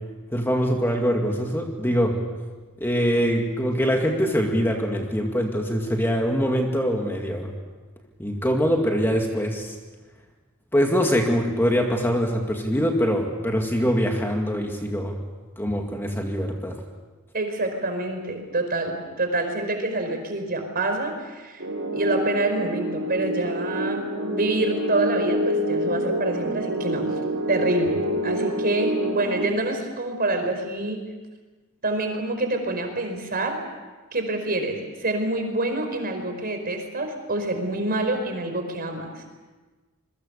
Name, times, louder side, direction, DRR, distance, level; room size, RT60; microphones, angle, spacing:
voice 1, 0.3-2.2 2.8-7.5 8.2-9.7 10.7-15.2 15.6-16.8, equal, 10° left, 1 dB, 2.2 m, -23 dB
voice 2, 17.3-21.6 21.9-27.1 27.5-31.0 31.8-33.6 34.1-39.2, right 2 dB, 45° right, 5 dB, 4.7 m, -26 dB
sound 1, 21.6-29.4, equal, 65° right, 3.4 m, -27 dB
27.0 x 22.5 x 6.9 m, 1.3 s
head